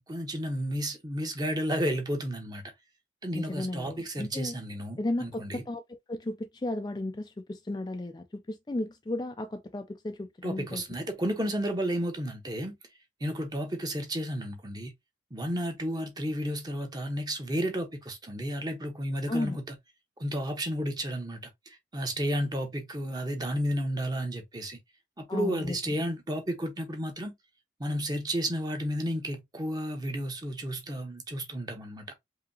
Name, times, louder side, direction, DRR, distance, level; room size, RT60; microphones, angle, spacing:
voice 1, 0.0-2.6 3.2-5.6 10.4-12.8 13.2-14.9 15.3-19.7 20.2-24.8 25.2-27.3 27.8-32.1, equal, 20° right, 1.0 m, -32 dB
voice 2, 3.3-4.5 5.0-10.8 19.3-19.6 25.3-26.0, left 1 dB, 25° left, 0.4 m, -34 dB
4.9 x 2.8 x 2.7 m
head